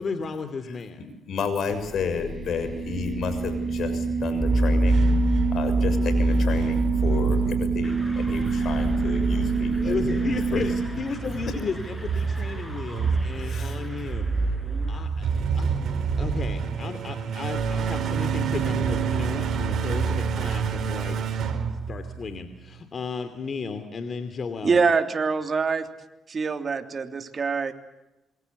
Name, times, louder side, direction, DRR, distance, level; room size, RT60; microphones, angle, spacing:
voice 1, 0.0-1.1 9.8-14.3 14.9-15.8 16.2-21.2 21.9-24.8, left 5 dB, 45° left, 9 dB, 2.9 m, -34 dB
voice 2, 1.3-5.0 5.5-10.6 13.3-13.8, left 6 dB, 65° left, 10 dB, 6.7 m, -32 dB
sound 1, 1.7-10.9, right 4 dB, 20° right, 7.5 m, -27 dB
sound 2, 4.3-22.4, right 3 dB, 65° right, 4.7 m, -26 dB
sound 3, 7.8-15.0, equal, 5° left, 7.8 m, -43 dB
voice 3, 24.6-25.9 26.3-27.7, right 5 dB, 40° right, 7 dB, 3.2 m, -24 dB
27.5 x 24.0 x 8.4 m, 0.96 s
cardioid pair, 90°, 0 cm